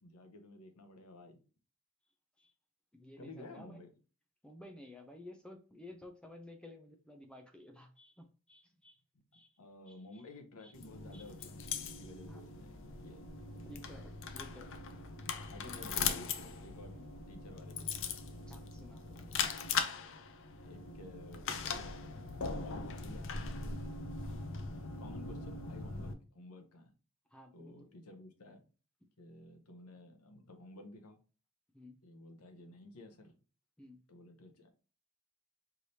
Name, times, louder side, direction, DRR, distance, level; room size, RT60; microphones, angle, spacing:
voice 1, 0.0-1.4 3.2-4.0 9.1-9.2 9.6-13.3 15.5-17.0 17.3-18.5 20.6-23.8 24.3-24.4 25.0-26.9 27.5-28.6 29.2-31.2 32.0-33.4 34.1-34.7, left 2 dB, 80° left, 6 dB, 0.9 m, -53 dB
voice 2, 2.9-3.8 4.4-9.0 9.3-9.5 9.9-10.0 10.6-10.7 11.1-11.2 12.3-12.4 13.7-14.7 15.7-16.2 17.0-17.1 18.5-19.3 27.3-27.9 31.7-32.0 33.8-34.0, left 1 dB, 5° left, 4 dB, 0.5 m, -54 dB
sound 1, 10.7-26.1, left 5 dB, 55° left, 0.5 m, -40 dB
4.7 x 3.2 x 2.7 m, 0.36 s
head